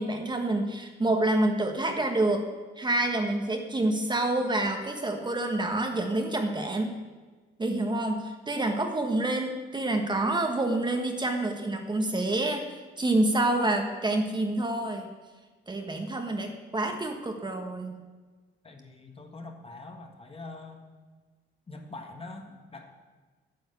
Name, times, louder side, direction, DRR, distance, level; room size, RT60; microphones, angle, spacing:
voice 1, 0.0-2.4 2.8-7.0 7.6-15.1 15.7-18.0, right 2 dB, 20° right, 4 dB, 1.3 m, -28 dB
voice 2, 18.6-20.8 21.7-22.9, left 3 dB, 30° left, 4 dB, 1.6 m, -44 dB
9.5 x 6.2 x 8.1 m, 1.4 s
cardioid pair, 90°, 20 cm